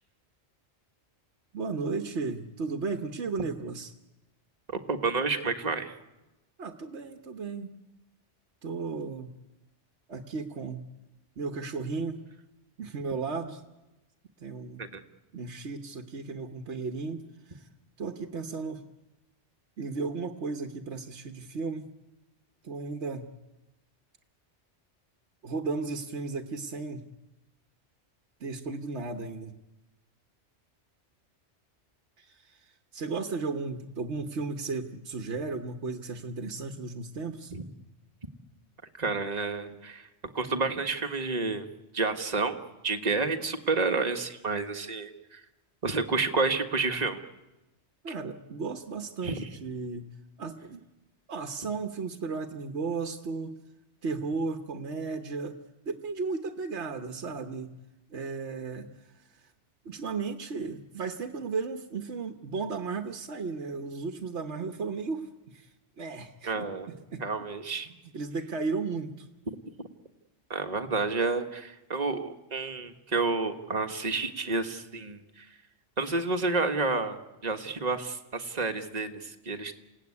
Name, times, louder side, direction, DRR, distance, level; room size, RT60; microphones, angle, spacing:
voice 1, 1.5-3.9 6.6-7.7 8.6-9.3 10.1-10.9 11.4-12.2 12.8-13.6 14.4-14.9 15.3-17.7 18.0-18.8 19.8-21.9 22.6-23.3 25.4-27.0 28.4-29.5 32.2-37.5 48.0-50.1 50.4-50.8 51.3-53.5 54.0-55.6 55.8-57.7 58.1-59.4 59.8-67.2 67.8-69.3, right 4 dB, 70° right, 6 dB, 1.5 m, -35 dB
voice 2, 4.9-5.9 14.8-15.0 37.5-37.6 39.0-40.0 40.3-41.7 41.9-42.6 42.8-45.4 45.8-47.2 49.2-49.4 66.5-66.9 67.2-67.9 70.5-75.2 76.0-77.2 77.4-79.1 79.4-79.7, right 3 dB, 35° right, 5 dB, 1.6 m, -29 dB
28.5 x 17.0 x 9.7 m, 1.0 s
omnidirectional pair, 1.2 m